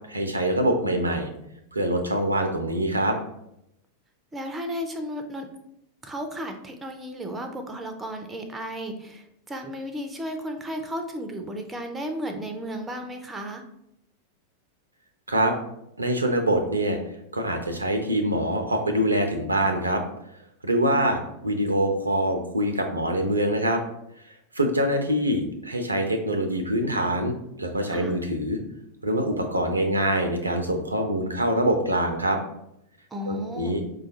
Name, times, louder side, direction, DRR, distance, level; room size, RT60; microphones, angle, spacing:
voice 1, 0.1-1.3 1.7-3.2 15.3-15.5 16.0-17.0 17.3-20.0 20.6-23.8 24.5-27.3 27.6-28.6 29.0-32.4 33.3-33.8, right 1 dB, 80° right, 5 dB, 0.4 m, -24 dB
voice 2, 4.3-5.5 6.0-13.6 27.9-28.2 33.1-33.8, equal, 15° right, 6 dB, 0.4 m, -34 dB
4.8 x 2.2 x 2.8 m, 0.79 s
figure-of-eight pair, 90°, 0 cm